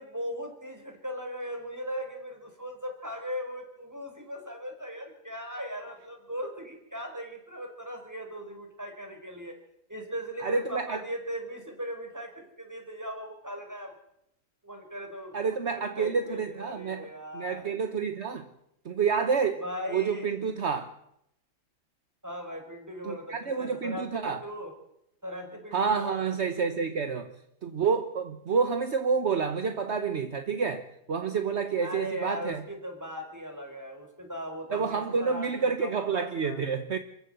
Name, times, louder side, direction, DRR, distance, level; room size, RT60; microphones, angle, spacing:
voice 1, 0.0-9.6 9.9-13.9 14.6-17.6 19.6-20.3 22.2-24.7 25.2-26.2 31.8-36.6, equal, 15° right, 5.0 m, -38 dB
voice 2, 10.4-11.0 15.3-17.1 17.3-18.5 18.8-19.6 19.9-20.9 23.0-24.4 25.7-27.3 27.6-32.6 34.7-37.0, right 5 dB, 55° right, 1.5 m, -29 dB
27.5 x 15.0 x 8.0 m
omnidirectional pair, 1.4 m